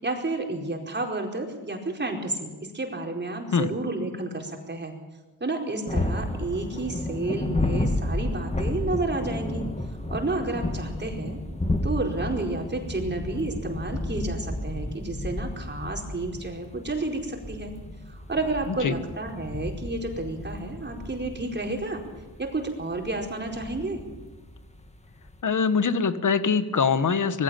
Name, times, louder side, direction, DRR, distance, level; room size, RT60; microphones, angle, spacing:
voice 1, 0.0-4.9 5.4-9.6 10.1-11.4 11.8-17.7 18.1-22.0 22.4-24.0, right 2 dB, 25° right, 1 dB, 4.6 m, -31 dB
sound 1, 5.9-25.4, left 1 dB, 15° left, 2.1 m, -32 dB
voice 2, 25.4-27.4, left 5 dB, 50° left, 12 dB, 1.6 m, -23 dB
20.0 x 16.5 x 9.1 m, 1.2 s
cardioid pair, 80°, 39 cm